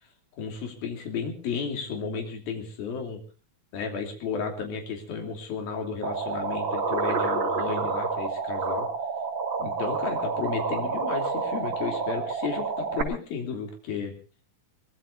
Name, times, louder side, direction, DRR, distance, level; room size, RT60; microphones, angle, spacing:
voice 1, 0.4-3.2 3.7-8.9 9.6-14.1, left 5 dB, 85° left, 4 dB, 4.9 m, -33 dB
sound 1, 6.0-13.0, right 4 dB, 35° right, 2.8 m, -29 dB
23.0 x 22.0 x 2.6 m, 0.35 s
omnidirectional pair, 4.1 m